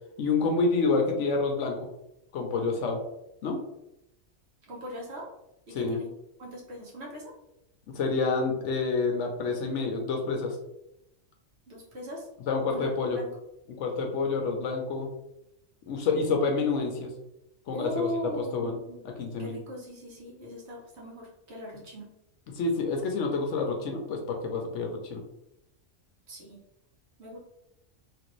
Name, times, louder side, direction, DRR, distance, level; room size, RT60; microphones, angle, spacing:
voice 1, 0.2-1.9 2.3-3.0 3.4-3.6 5.7-6.0 7.9-10.6 12.5-13.2 13.8-15.1 15.9-17.1 17.7-18.1 18.4-18.7 19.2-19.6 22.5-25.2, left 4 dB, 70° left, 2 dB, 0.9 m, -28 dB
voice 2, 4.7-5.3 5.7-6.1 6.4-7.3 11.7-12.3 12.7-13.3 17.7-19.0 19.4-22.1 26.3-26.6 27.2-27.4, equal, 55° right, -3 dB, 1.1 m, -39 dB
3.2 x 2.5 x 3.0 m, 0.83 s
omnidirectional pair, 1.4 m